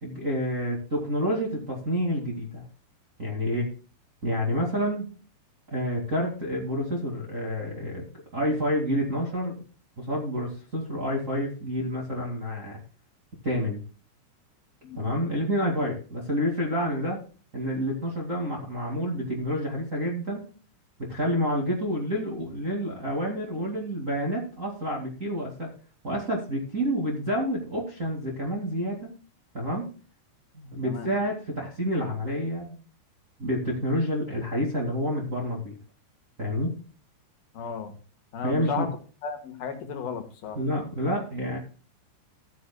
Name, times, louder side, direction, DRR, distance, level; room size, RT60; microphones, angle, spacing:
voice 1, 0.0-2.6 3.2-3.7 4.2-5.1 5.7-8.0 8.3-9.6 10.0-12.8 13.4-13.8 15.0-17.2 17.5-20.4 21.0-25.7 26.0-29.1 29.5-29.8 30.5-32.8 33.4-35.8 36.4-36.7 38.4-38.9 40.5-41.6, equal, 50° right, -3 dB, 0.8 m, -28 dB
voice 2, 37.5-37.9 38.3-38.9 39.2-40.6, left 6 dB, 65° left, 5 dB, 2.6 m, -34 dB
15.5 x 9.9 x 2.2 m, 0.37 s
omnidirectional pair, 5.8 m